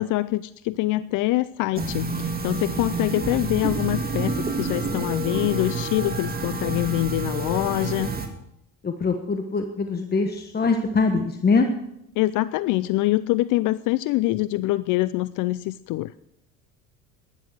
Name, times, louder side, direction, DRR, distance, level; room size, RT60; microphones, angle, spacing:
voice 1, 0.0-8.1 12.2-16.1, left 17 dB, 50° left, 17 dB, 0.5 m, -25 dB
sound 1, 1.7-8.3, right 3 dB, 20° right, 2.2 m, -28 dB
voice 2, 8.8-11.7, left 4 dB, 25° left, 6 dB, 1.3 m, -23 dB
12.5 x 10.5 x 6.7 m, 0.80 s
hypercardioid pair, 75°, 40 cm